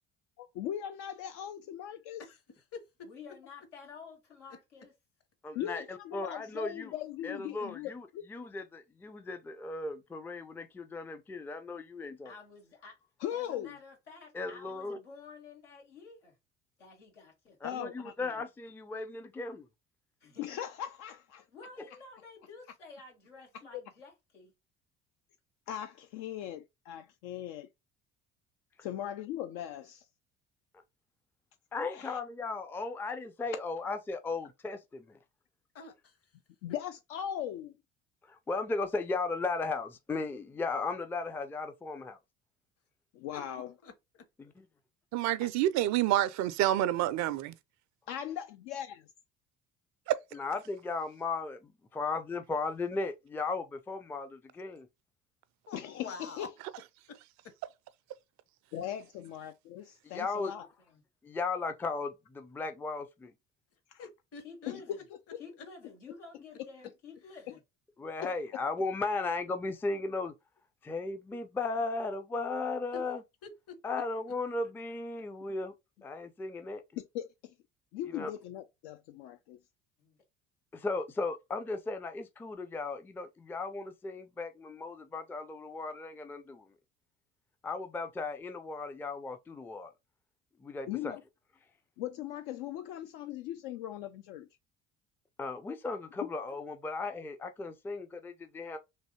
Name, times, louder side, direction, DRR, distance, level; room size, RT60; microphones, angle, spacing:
voice 1, 0.4-2.2 5.5-8.3 13.2-13.7 17.6-18.3 20.4-21.4 23.7-23.8 25.7-27.7 28.8-30.1 31.9-32.2 36.6-37.7 43.1-43.7 48.1-49.0 55.7-56.5 58.7-60.7 63.9-64.1 64.7-65.0 65.3-65.4 67.5-67.6 68.2-68.3 77.1-77.5 77.9-79.6 90.9-91.2 92.0-94.5 96.2-96.3, left 11 dB, 65° left, 0.5 m, -39 dB
voice 2, 3.0-4.9 12.2-13.0 13.3-16.3 16.8-17.6 20.2-20.6 21.5-24.5 60.4-61.0 64.4-65.0 65.4-67.6 80.0-80.2, left 4 dB, 90° left, 1.4 m, -51 dB
voice 3, 5.4-6.9 7.2-12.3 14.3-15.0 17.6-19.7 31.7-35.2 38.3-42.2 50.3-54.9 60.1-60.5 61.2-63.3 68.0-70.4 70.8-73.2 73.8-75.7 76.0-76.8 78.1-78.3 80.7-86.7 87.6-89.9 90.6-91.1 95.4-98.8, left 3 dB, 5° left, 0.4 m, -36 dB
voice 4, 35.7-36.1 43.3-43.4 43.8-44.2 55.7-56.5 64.0-64.7 72.9-73.0 73.4-73.7, left 5 dB, 40° left, 1.0 m, -45 dB
voice 5, 45.1-47.5 50.1-50.2, right 13 dB, 55° right, 0.4 m, -28 dB
3.2 x 2.6 x 2.8 m
hypercardioid pair, 60°, 35 cm